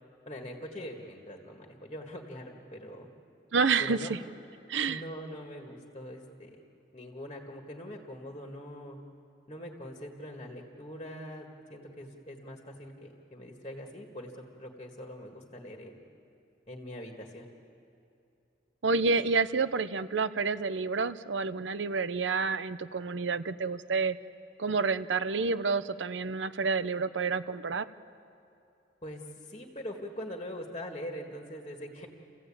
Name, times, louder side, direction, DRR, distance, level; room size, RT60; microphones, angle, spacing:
voice 1, 0.3-3.1 3.8-4.1 4.9-6.6 6.9-9.0 9.5-14.3 14.6-16.0 16.7-17.5 29.0-32.1, equal, 30° left, 2 dB, 1.8 m, -43 dB
voice 2, 3.5-4.2 4.7-5.0 18.8-24.2 24.6-27.9, right 4 dB, 85° right, 13 dB, 0.7 m, -29 dB
30.0 x 15.0 x 8.7 m, 2.7 s
head